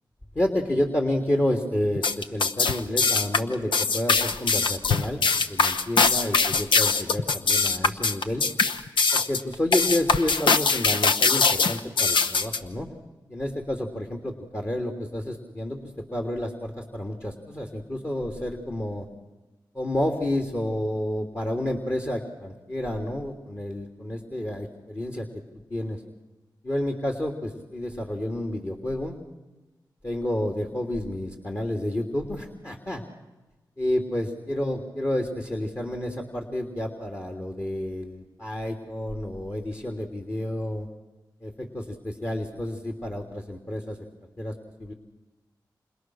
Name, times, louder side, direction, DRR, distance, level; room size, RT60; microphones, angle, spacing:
voice 1, 0.3-5.2 5.5-8.4 9.1-12.9 13.3-19.0 19.7-25.3 25.7-26.0 26.6-29.2 30.0-33.0 33.8-40.9 41.4-44.0 44.4-44.5 44.8-44.9, left 1 dB, 30° left, 3 dB, 3.2 m, -30 dB
sound 1, 2.0-12.6, left 4 dB, 80° left, 1.0 m, -22 dB
29.0 x 27.5 x 6.4 m, 1.1 s
cardioid pair, 45°, 8 cm